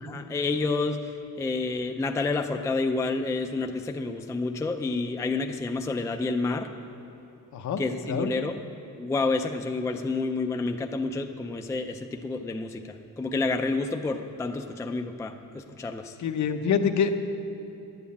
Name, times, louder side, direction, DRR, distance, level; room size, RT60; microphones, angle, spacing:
voice 1, 0.0-6.7 7.8-8.5 9.0-16.2, left 3 dB, 10° left, 5 dB, 0.4 m, -29 dB
voice 2, 16.2-17.1, left 7 dB, 55° left, 7 dB, 0.8 m, -25 dB
11.5 x 9.3 x 8.5 m, 2.9 s
cardioid pair, 170°, 33 cm